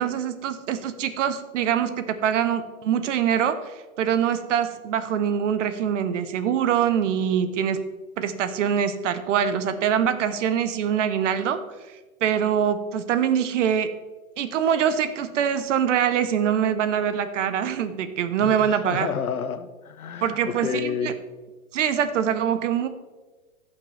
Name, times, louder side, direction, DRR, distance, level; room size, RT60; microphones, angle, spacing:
voice 1, 0.0-7.8 8.2-11.6 12.2-13.9 14.4-19.1 20.2-21.1 21.7-22.9, right 8 dB, 60° right, 11 dB, 1.0 m, -24 dB
voice 2, 18.4-21.2, left 7 dB, 85° left, 10 dB, 1.0 m, -30 dB
15.5 x 5.9 x 3.3 m, 1.3 s
hypercardioid pair, 125°, 42 cm